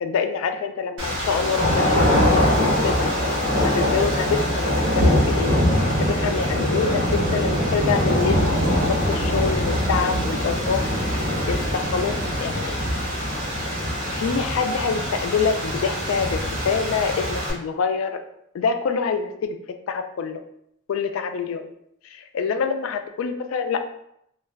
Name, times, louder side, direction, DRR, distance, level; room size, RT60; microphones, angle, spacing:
voice 1, 0.0-3.1 3.6-5.5 5.8-11.2 11.5-12.8 14.1-18.2 18.5-19.6 19.9-20.4 20.9-21.7 22.1-23.8, left 5 dB, 80° left, 7 dB, 0.3 m, -26 dB
sound 1, 1.0-17.5, equal, 65° right, 0.8 m, -23 dB
2.3 x 2.2 x 3.4 m, 0.75 s
head